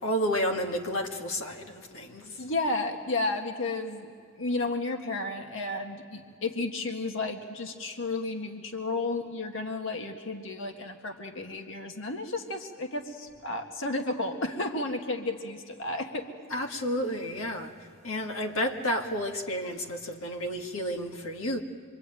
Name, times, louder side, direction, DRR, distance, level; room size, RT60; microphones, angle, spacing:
voice 1, 0.0-2.4 16.5-17.7 18.0-21.6, equal, 80° left, 1.9 m, -31 dB
voice 2, 2.4-4.1 4.4-16.3, left 2 dB, 65° left, 1.8 m, -32 dB
27.0 x 24.0 x 9.1 m
head